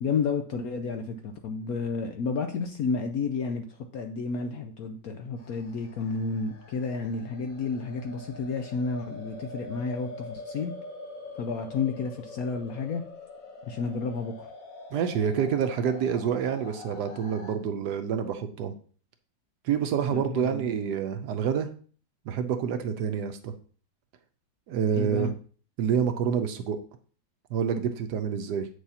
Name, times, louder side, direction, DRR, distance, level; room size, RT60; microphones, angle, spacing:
voice 1, 0.0-10.7 11.4-13.0 13.7-14.5 20.1-20.6 24.9-25.3, left 4 dB, 70° left, 6 dB, 0.9 m, -31 dB
sound 1, 5.4-17.6, left 3 dB, 55° left, 1.2 m, -45 dB
voice 2, 14.9-18.7 19.6-21.7 22.3-23.5 24.7-25.3 25.8-26.8 27.5-28.7, right 7 dB, 70° right, 8 dB, 1.1 m, -27 dB
8.1 x 6.3 x 2.8 m, 0.42 s
omnidirectional pair, 2.0 m